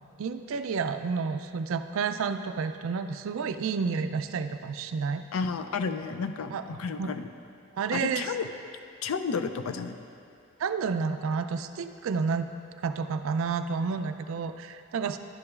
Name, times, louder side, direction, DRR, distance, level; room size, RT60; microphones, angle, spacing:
voice 1, 0.2-5.2 6.5-6.6 7.0-7.1 7.7-8.3 10.6-12.5 12.8-15.2, right 5 dB, 65° right, 9 dB, 0.3 m, -30 dB
voice 2, 5.3-7.3 7.9-8.5 9.0-10.0, left 5 dB, 70° left, 9 dB, 0.4 m, -31 dB
11.5 x 7.9 x 2.4 m, 2.5 s
head